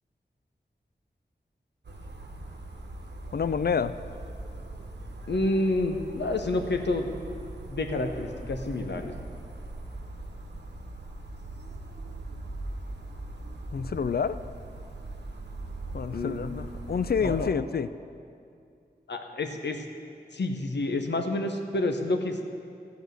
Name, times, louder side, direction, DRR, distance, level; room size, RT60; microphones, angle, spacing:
sound 1, 1.8-17.5, right 2 dB, 75° right, 1.0 m, -40 dB
voice 1, 3.3-4.0 13.7-14.4 15.9-17.9, left 6 dB, 65° left, 14 dB, 0.4 m, -28 dB
voice 2, 5.3-7.1 7.7-9.1 16.1-16.4 17.2-17.5 19.1-19.8 20.3-22.5, left 2 dB, 85° left, 5 dB, 0.9 m, -29 dB
13.5 x 4.7 x 7.9 m, 2.4 s
cardioid pair, 40°, 18 cm